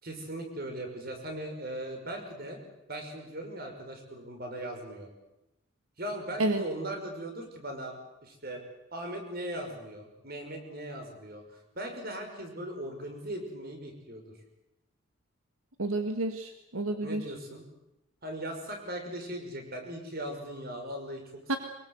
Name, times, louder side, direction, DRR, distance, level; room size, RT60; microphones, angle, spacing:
voice 1, 0.0-2.6 2.9-5.1 6.0-8.6 8.9-14.4 17.0-17.6 18.2-21.6, right 1 dB, 45° right, 4 dB, 6.0 m, -39 dB
voice 2, 15.8-17.2 21.5-21.6, right 2 dB, 80° right, 6 dB, 2.0 m, -30 dB
24.5 x 23.0 x 8.2 m, 0.90 s
head